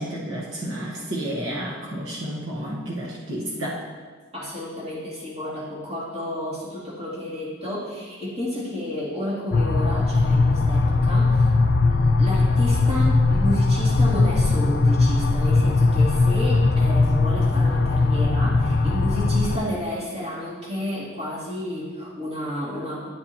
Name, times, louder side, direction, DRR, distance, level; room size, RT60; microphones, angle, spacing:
voice 1, 0.0-3.8, right 1 dB, 70° right, -5 dB, 1.2 m, -31 dB
voice 2, 4.3-11.5 12.2-23.1, left 1 dB, 30° right, -8 dB, 2.6 m, -31 dB
sound 1, 9.5-19.6, left 3 dB, 50° left, 0.4 m, -19 dB
11.5 x 8.1 x 2.8 m, 1.5 s
head